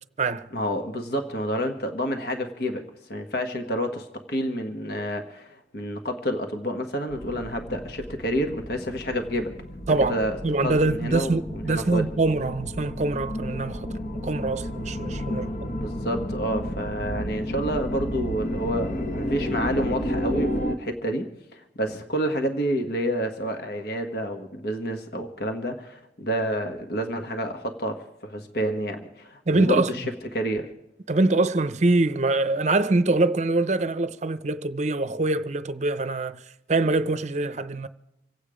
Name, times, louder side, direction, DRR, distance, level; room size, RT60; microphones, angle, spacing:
voice 1, 0.5-9.5 10.1-12.1 15.3-15.5 15.7-30.1 30.3-30.7, equal, 60° left, 1.4 m, -29 dB
sound 1, 7.1-20.8, equal, 45° left, 1.1 m, -32 dB
voice 2, 9.9-13.9 14.2-15.7 29.5-29.9 31.1-36.4 36.7-37.9, right 2 dB, 40° right, 0.7 m, -24 dB
26.5 x 8.9 x 5.0 m
head